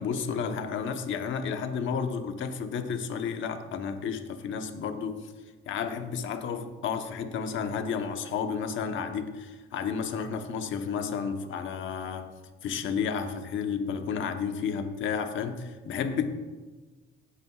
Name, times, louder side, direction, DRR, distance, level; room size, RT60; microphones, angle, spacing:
voice 1, 0.0-5.2 5.7-12.3 12.6-16.3, left 6 dB, 75° left, 6 dB, 1.0 m, -32 dB
17.0 x 8.7 x 2.4 m, 1.3 s
cardioid pair, 90°, 20 cm